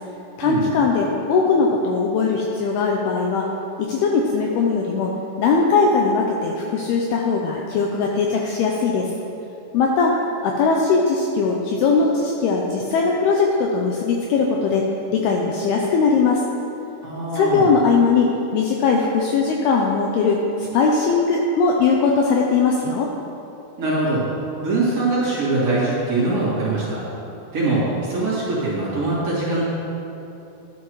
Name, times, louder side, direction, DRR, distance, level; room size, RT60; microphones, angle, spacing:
voice 1, 0.4-3.5 3.8-5.1 5.4-9.1 9.7-10.2 10.4-14.8 15.1-16.4 17.3-20.4 20.7-23.1, left 4 dB, 80° left, -1 dB, 2.4 m, -20 dB
voice 2, 17.0-17.7 23.8-24.2 24.6-27.0 27.5-29.6, right 2 dB, 45° right, -10 dB, 3.1 m, -22 dB
12.5 x 11.0 x 3.1 m, 2.9 s
omnidirectional pair, 5.1 m